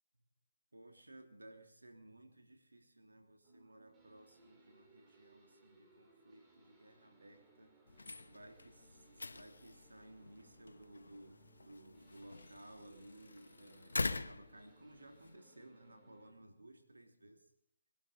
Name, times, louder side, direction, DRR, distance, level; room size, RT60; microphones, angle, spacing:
voice 1, 0.7-7.8 8.2-17.5, right 1 dB, 90° right, 4 dB, 3.1 m, -58 dB
sound 1, 3.4-16.3, right 2 dB, 15° right, 3.5 m, -67 dB
sound 2, 7.9-15.4, left 3 dB, 80° left, 1.0 m, -45 dB
21.5 x 12.5 x 5.3 m, 0.64 s
figure-of-eight pair, 150°, 0 cm